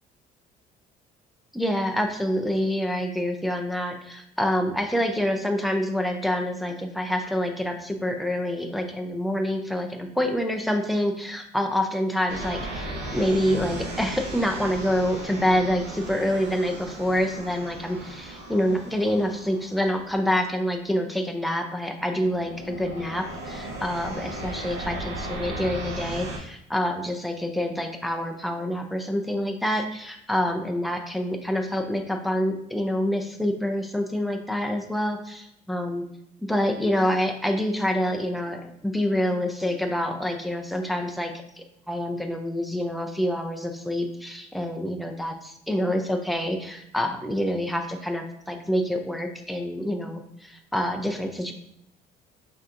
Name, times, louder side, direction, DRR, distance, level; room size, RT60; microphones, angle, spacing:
voice 1, 1.5-36.1 36.4-41.3 41.9-51.5, equal, ahead, 3 dB, 0.5 m, -27 dB
sound 1, 12.3-20.6 21.3-21.6 22.1-26.4, right 1 dB, 85° right, 1.0 m, -36 dB
5.7 x 2.9 x 2.5 m, 0.76 s
cardioid pair, 110°, 17 cm